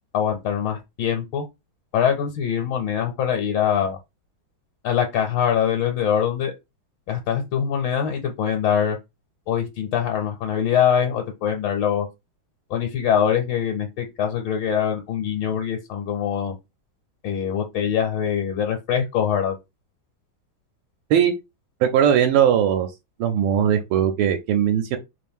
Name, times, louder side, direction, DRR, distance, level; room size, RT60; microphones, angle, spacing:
voice 1, 0.1-1.5 1.9-4.0 4.8-6.5 7.1-9.0 9.5-12.1 12.7-16.5 17.2-19.6, left 8 dB, 75° left, 1.4 m, -23 dB
voice 2, 21.8-22.9 23.2-25.0, right 9 dB, 85° right, 1.4 m, -19 dB
3.3 x 2.5 x 3.5 m
omnidirectional pair, 2.2 m